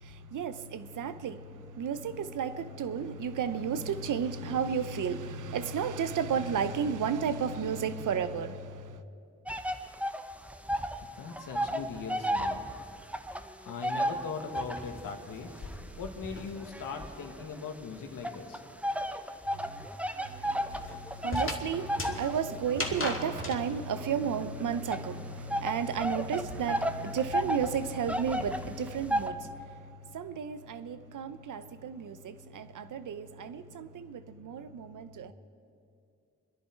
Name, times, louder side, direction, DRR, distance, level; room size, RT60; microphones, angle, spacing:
voice 1, 0.0-9.0 19.6-19.7 20.4-20.5 20.9-29.5 30.1-35.3, right 6 dB, 70° right, 0.8 m, -33 dB
sound 1, 9.5-11.0 11.3-15.0 15.5-17.6 18.2-29.3, equal, 5° right, 1.1 m, -33 dB
voice 2, 11.1-12.7 13.6-15.5 16.0-18.6, left 5 dB, 75° left, 1.7 m, -40 dB
sound 2, 13.7-17.5 17.7-23.6, left 2 dB, 40° left, 2.5 m, -40 dB
25.0 x 10.5 x 4.6 m
supercardioid pair, 50°, 32 cm